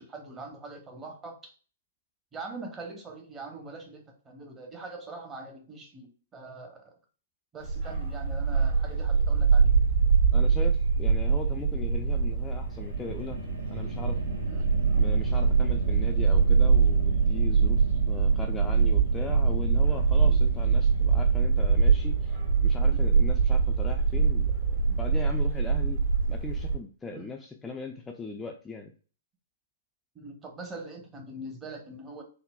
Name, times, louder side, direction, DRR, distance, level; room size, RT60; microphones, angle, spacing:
voice 1, 0.0-1.4 2.3-6.1 6.3-6.9 7.5-9.8 14.5-14.7 20.2-20.4 22.8-23.0 27.1-27.3 30.1-32.2, right 2 dB, 20° right, 2 dB, 0.8 m, -42 dB
Bark, 7.6-26.7, right 5 dB, 60° right, 1.5 m, -24 dB
voice 2, 10.3-13.4 13.7-14.2 15.0-24.6 24.9-26.0 26.3-28.9, left 3 dB, 10° left, 1 dB, 0.3 m, -39 dB
sound 1, 12.2-24.6, equal, 75° right, 1.4 m, -38 dB
3.8 x 2.0 x 2.2 m, 0.39 s
hypercardioid pair, 120°, 0 cm